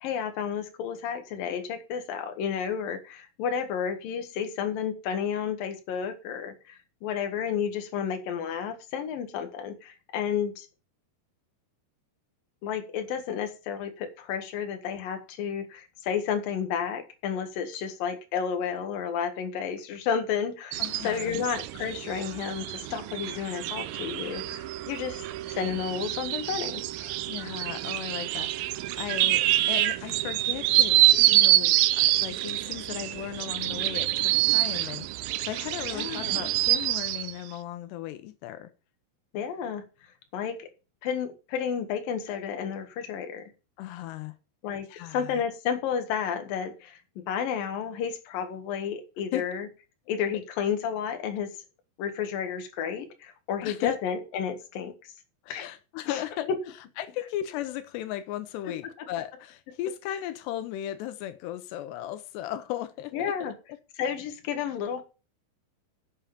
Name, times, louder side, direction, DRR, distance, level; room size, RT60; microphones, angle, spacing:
voice 1, 0.0-10.7 12.6-27.2 35.9-36.4 39.3-39.8 40.3-40.7 41.0-43.5 44.6-44.9 45.1-47.0 47.3-49.7 50.1-51.5 52.0-55.1 55.5-55.7 56.1-56.2 59.0-59.1 63.1-63.5 64.0-65.0, left 7 dB, 65° left, 3.2 m, -31 dB
sound 1, 20.7-37.3, right 15 dB, 80° right, 2.1 m, -26 dB
voice 2, 20.8-21.4 27.3-31.0 31.3-38.7 43.8-44.3 44.9-45.4 49.3-49.5 53.6-54.0 55.4-56.5 57.0-63.5, left 12 dB, 90° left, 3.0 m, -36 dB
8.8 x 7.3 x 7.1 m
omnidirectional pair, 4.7 m